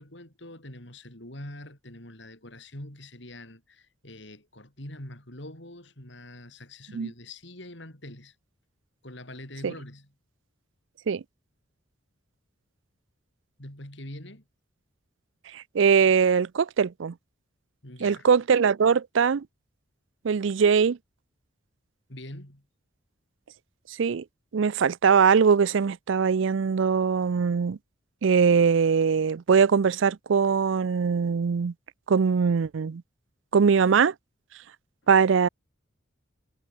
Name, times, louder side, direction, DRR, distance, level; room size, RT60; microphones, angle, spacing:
voice 1, 0.0-8.4 9.0-10.1 13.6-14.4 17.8-18.3 22.1-22.6, left 1 dB, 60° left, 5.3 m, -44 dB
voice 2, 15.5-17.1 18.0-19.4 20.2-21.0 24.0-24.2 24.5-27.8 28.2-31.7 32.1-33.0 33.5-34.1 35.1-35.5, right 6 dB, 75° right, 0.4 m, -21 dB
head